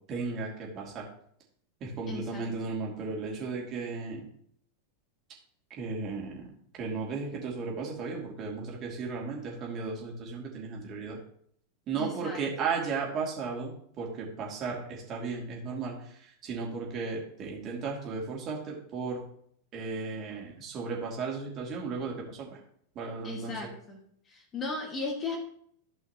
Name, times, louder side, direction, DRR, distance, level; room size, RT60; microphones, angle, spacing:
voice 1, 0.1-1.0 1.8-4.3 5.8-6.5 6.8-11.2 11.9-19.2 19.7-22.6 22.9-23.6, right 4 dB, 35° right, -2 dB, 2.9 m, -35 dB
voice 2, 2.1-2.5 12.0-12.4 23.2-24.0 24.3-25.4, left 3 dB, 25° left, 2 dB, 2.1 m, -36 dB
15.5 x 5.5 x 3.1 m, 0.66 s
figure-of-eight pair, 90°, 0 cm